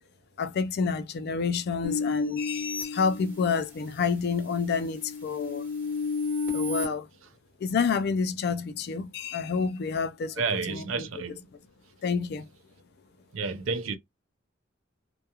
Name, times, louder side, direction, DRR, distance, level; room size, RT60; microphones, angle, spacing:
voice 1, 0.4-5.7 6.5-7.1 7.6-10.4 10.7-11.1 12.0-12.5, left 5 dB, 50° left, 0.3 m, -29 dB
sound 1, 1.8-3.8 4.3-6.9, left 4 dB, 10° right, 1.1 m, -32 dB
voice 2, 10.4-11.4 13.3-14.0, right 4 dB, 75° right, 0.5 m, -30 dB
2.3 x 2.1 x 2.8 m
head